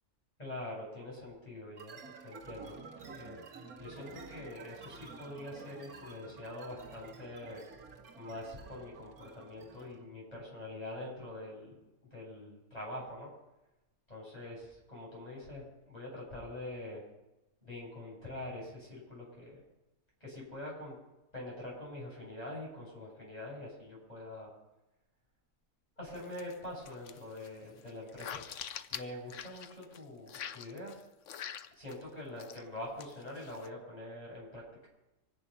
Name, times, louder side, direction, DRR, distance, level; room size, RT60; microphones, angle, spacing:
voice 1, 0.4-2.7 3.1-3.4 3.8-7.6 8.2-11.8 12.1-13.3 14.1-17.0 17.6-19.6 20.2-20.9 21.3-24.5 26.0-28.4 28.9-30.9 31.7-34.6, left 1 dB, 25° left, -4 dB, 8.2 m, -44 dB
sound 1, 1.8-10.1, right 4 dB, 80° right, 2.2 m, -51 dB
sound 2, 26.1-26.6 26.9-30.0 30.3-32.0 32.4-32.6 33.0-33.7, left 9 dB, 60° left, 1.0 m, -45 dB
25.5 x 10.0 x 5.7 m, 0.98 s
omnidirectional pair, 1.5 m